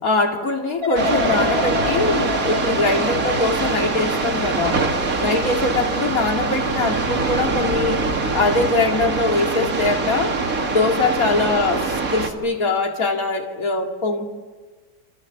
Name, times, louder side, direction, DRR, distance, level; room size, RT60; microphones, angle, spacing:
voice 1, 0.0-4.8 5.2-8.1 8.3-10.4 10.7-14.3, left 3 dB, 45° left, 2 dB, 2.9 m, -22 dB
sound 1, 0.8-7.8 8.2-8.6, left 4 dB, 30° right, 3.9 m, -30 dB
sound 2, 0.9-12.3, right 3 dB, 45° right, 2.5 m, -23 dB
28.0 x 28.0 x 7.5 m, 1.4 s
omnidirectional pair, 2.0 m